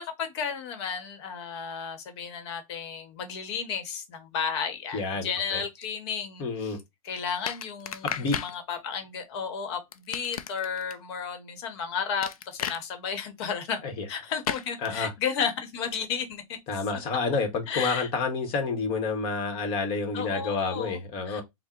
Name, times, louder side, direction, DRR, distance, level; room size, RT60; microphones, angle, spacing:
voice 1, 0.0-6.8 7.0-13.8 14.1-16.6 17.7-18.1 20.1-21.0 21.3-21.4, left 6 dB, 50° left, 1.0 m, -33 dB
voice 2, 4.9-5.6 6.4-6.8 8.0-8.4 13.8-14.0 14.8-15.1 16.7-21.4, left 4 dB, 30° left, 1.0 m, -29 dB
sound 1, 7.5-8.5 9.9-10.9 12.2-12.8 14.4-14.7, left 9 dB, 80° left, 0.5 m, -33 dB
3.6 x 2.1 x 4.3 m
hypercardioid pair, 140°, 18 cm